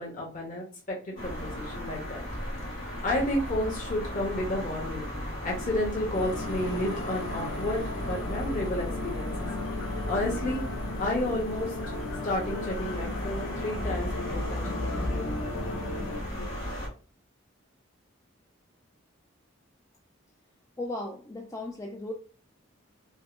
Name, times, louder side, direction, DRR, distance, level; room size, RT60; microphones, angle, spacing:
voice 1, 0.0-2.2 2.9-5.1 5.4-9.5 10.1-10.6 11.0-11.7 12.2-15.3, left 1 dB, 40° left, -2 dB, 0.9 m, -31 dB
sound 1, 1.2-16.9, equal, 65° left, 1.6 m, -35 dB
sound 2, 6.1-16.2, left 3 dB, 85° left, 0.5 m, -37 dB
voice 2, 20.8-22.1, left 2 dB, 15° left, 0 dB, 0.3 m, -36 dB
4.7 x 2.0 x 2.5 m, 0.37 s
head